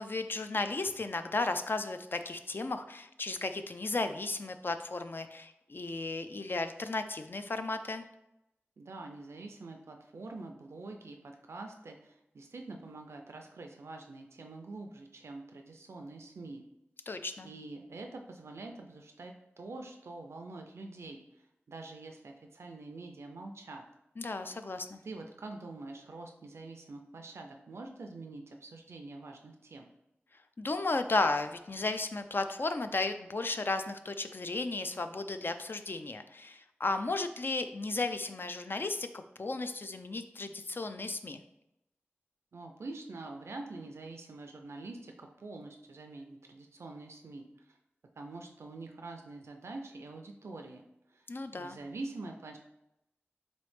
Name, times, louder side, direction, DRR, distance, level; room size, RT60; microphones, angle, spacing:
voice 1, 0.0-8.0 17.1-17.5 24.2-25.0 30.6-39.1 39.4-41.4 51.3-51.8, left 3 dB, 55° left, 8 dB, 0.3 m, -34 dB
voice 2, 8.8-16.6 17.4-23.8 25.0-29.9 42.5-47.5 48.2-50.8 51.1-51.3 51.5-52.6, right 2 dB, 90° right, 3 dB, 0.4 m, -45 dB
4.1 x 3.1 x 3.1 m, 0.87 s
wide cardioid pair, 50°, 4 cm